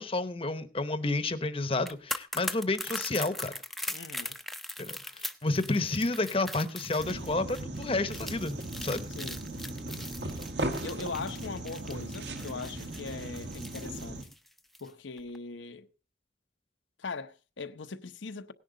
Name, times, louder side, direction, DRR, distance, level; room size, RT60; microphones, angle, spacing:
voice 1, 0.0-3.5 4.8-9.1, left 2 dB, 30° left, 0.9 m, -30 dB
sound 1, 1.7-14.9 15.2-15.4, left 1 dB, ahead, 0.6 m, -40 dB
voice 2, 3.9-4.4 9.2-9.4 10.8-14.3 14.8-15.9 17.0-18.5, left 4 dB, 80° left, 0.8 m, -40 dB
sound 2, 7.0-14.2, right 1 dB, 65° right, 1.8 m, -37 dB
17.5 x 10.5 x 3.8 m
head